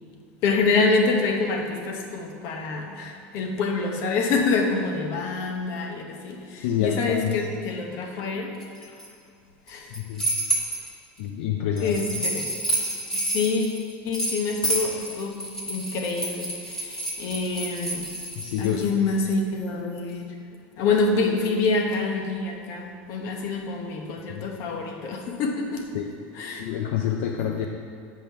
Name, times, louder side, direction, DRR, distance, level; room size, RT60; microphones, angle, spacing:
voice 1, 0.4-8.5 9.7-9.9 11.8-12.5 13.1-13.8 14.0-18.1 18.6-20.3 20.8-25.9 26.3-26.7, left 3 dB, 50° left, 2 dB, 1.1 m, -26 dB
voice 2, 6.6-7.4 10.0-10.3 11.2-12.0 18.4-18.9 24.3-24.5 25.9-26.1 26.6-27.7, left 9 dB, 75° left, 2 dB, 0.6 m, -27 dB
sound 1, 8.6-9.1 9.7-10.9 11.8-18.8, right 1 dB, 10° left, 1.5 m, -29 dB
7.8 x 5.3 x 5.6 m, 2.2 s
supercardioid pair, 145°, 6 cm